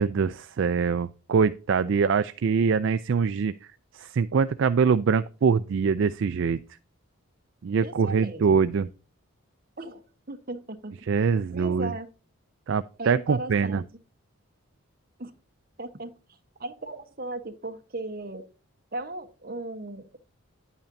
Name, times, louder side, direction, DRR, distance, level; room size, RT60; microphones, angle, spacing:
voice 1, 0.0-3.7 3.9-6.6 7.6-8.9 11.1-11.9 12.7-13.8, right 5 dB, 60° right, 0.3 m, -24 dB
voice 2, 7.8-8.7 9.8-11.1 11.5-12.1 13.0-13.8 15.2-15.3 15.8-18.4 18.9-20.2, right 2 dB, 40° right, 1.0 m, -37 dB
10.0 x 8.9 x 2.6 m
head